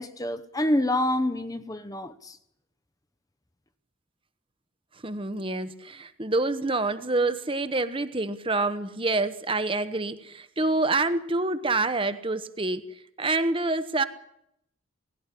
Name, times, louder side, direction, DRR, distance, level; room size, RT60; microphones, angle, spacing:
voice 1, 0.0-2.4, left 1 dB, 15° left, 0.8 m, -27 dB
voice 2, 5.0-12.8 13.2-14.0, right 2 dB, 25° right, 1.0 m, -27 dB
18.5 x 16.5 x 9.9 m
head